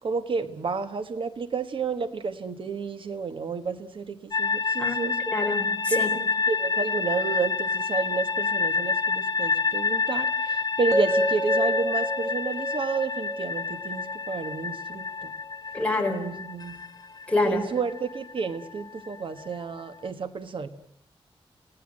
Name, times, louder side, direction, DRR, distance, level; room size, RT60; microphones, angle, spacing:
voice 1, 0.0-5.1 6.5-15.3 16.1-16.8 17.4-20.7, right 5 dB, 60° right, 10 dB, 1.4 m, -31 dB
sound 1, 4.3-20.1, left 4 dB, 40° left, 1.5 m, -29 dB
voice 2, 5.3-6.1 15.7-16.3 17.3-17.6, left 2 dB, 15° left, 2 dB, 4.4 m, -26 dB
sound 2, 10.9-15.0, equal, 30° right, 1.9 m, -29 dB
29.5 x 18.0 x 7.6 m, 0.69 s
wide cardioid pair, 145°, 10 cm